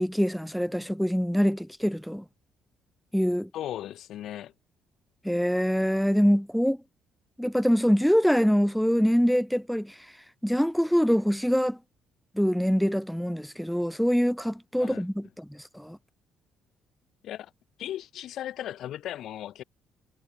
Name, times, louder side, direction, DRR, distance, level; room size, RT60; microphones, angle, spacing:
voice 1, 0.0-2.2 3.1-3.5 5.2-6.8 7.4-9.9 10.4-11.8 12.4-15.5 15.7-16.0, equal, ahead, 0.5 m, -24 dB
voice 2, 3.5-4.5 14.8-15.1 17.2-17.5 17.8-19.6, left 12 dB, 70° left, 0.6 m, -37 dB
supercardioid pair, 70°, 0 cm